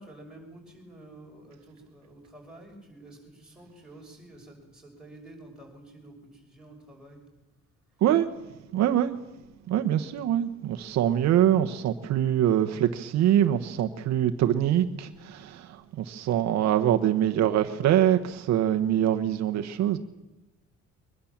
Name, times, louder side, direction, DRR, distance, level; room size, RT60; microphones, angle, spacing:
voice 1, 0.0-7.2, right 1 dB, ahead, 6.1 m, -49 dB
voice 2, 8.7-9.1 9.7-20.0, right 11 dB, 65° right, 1.2 m, -24 dB
23.0 x 21.0 x 7.4 m
cardioid pair, 175°, 29 cm